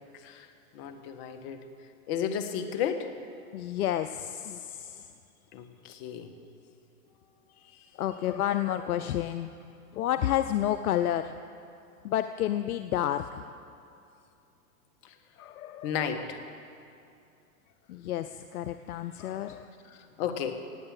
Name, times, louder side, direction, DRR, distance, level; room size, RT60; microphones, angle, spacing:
voice 1, 0.0-1.6 2.1-3.1 5.5-6.3 15.0-15.2 15.8-16.4 19.8-20.6, left 8 dB, 45° left, 7 dB, 1.5 m, -34 dB
voice 2, 3.5-5.1 7.6-9.5 9.9-11.3 12.0-13.4 15.4-15.9 17.9-19.7, left 12 dB, 80° left, 11 dB, 0.7 m, -30 dB
18.5 x 8.7 x 7.5 m, 2.5 s
hypercardioid pair, 130°, 43 cm